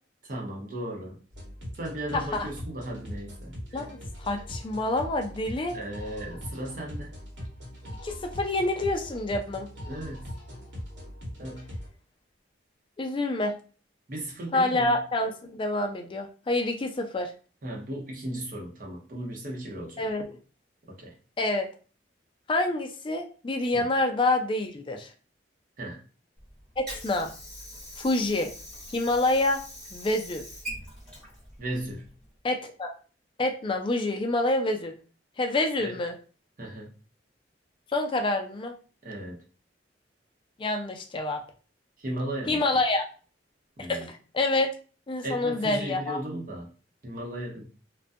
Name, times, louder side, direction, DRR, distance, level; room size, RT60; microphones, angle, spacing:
voice 1, 0.2-1.2 1.8-3.6 5.7-7.1 9.8-10.3 11.4-11.7 14.1-15.0 17.6-20.0 20.9-21.1 23.7-23.8 25.8-26.0 31.6-32.1 35.8-36.0 36.6-36.9 39.0-39.4 42.0-42.6 43.8-44.1 45.2-46.7 47.0-47.6, right 1 dB, 45° right, -2 dB, 0.8 m, -36 dB
sound 1, 1.3-11.9, equal, 80° right, 1.1 m, -41 dB
voice 2, 2.1-2.5 3.7-5.8 8.0-9.7 13.0-13.5 14.5-17.3 20.0-20.4 21.4-21.7 22.5-25.1 26.8-27.3 28.0-28.5 28.9-29.6 29.9-30.4 32.4-32.9 33.4-34.9 35.4-36.1 37.9-38.7 40.6-41.4 42.5-43.0 43.9-44.7 45.1-46.2, left 2 dB, 30° left, 5 dB, 0.3 m, -27 dB
Water / Sink (filling or washing), 26.4-32.4, equal, 5° left, 1.0 m, -43 dB
2.4 x 2.2 x 2.5 m, 0.38 s
head